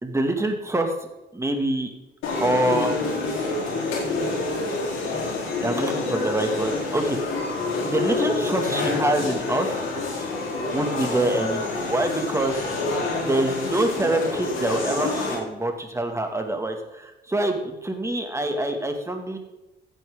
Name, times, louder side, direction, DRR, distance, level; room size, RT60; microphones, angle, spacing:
voice 1, 0.0-0.9 1.3-1.9 2.4-2.9 5.6-7.2 7.8-9.7 10.7-12.7 13.2-19.4, right 1 dB, 15° right, 4 dB, 2.2 m, -25 dB
sound 1, 2.2-15.4, left 3 dB, 90° left, 4.1 m, -27 dB
15.0 x 9.1 x 3.8 m, 1.0 s
cardioid pair, 90°, 20 cm